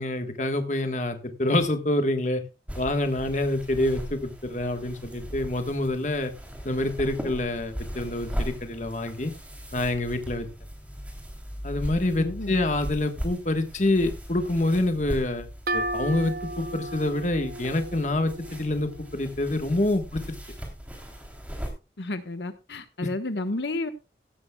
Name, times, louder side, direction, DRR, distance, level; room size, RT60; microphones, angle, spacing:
voice 1, 0.0-2.4 2.8-6.3 6.6-9.3 9.7-10.5 11.6-15.5 15.7-20.2, left 1 dB, 40° left, 7 dB, 1.4 m, -26 dB
sound 1, 2.7-21.7, equal, 10° right, 3.2 m, -38 dB
voice 2, 12.2-12.6 22.0-23.9, left 2 dB, 80° left, 9 dB, 1.2 m, -31 dB
sound 2, 15.7-19.2, right 1 dB, 55° right, 0.7 m, -34 dB
16.0 x 12.5 x 2.3 m, 0.28 s
head